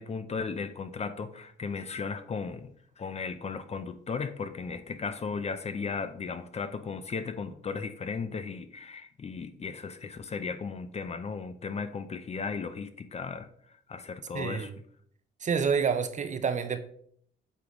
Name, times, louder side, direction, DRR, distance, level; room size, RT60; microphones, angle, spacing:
voice 1, 0.0-2.7 3.0-13.5 13.9-14.7, left 5 dB, 30° left, 11 dB, 0.5 m, -36 dB
voice 2, 14.3-14.8 15.4-16.8, right 6 dB, 40° right, 10 dB, 0.6 m, -28 dB
8.2 x 3.8 x 3.0 m, 0.63 s
cardioid pair, 90°, 20 cm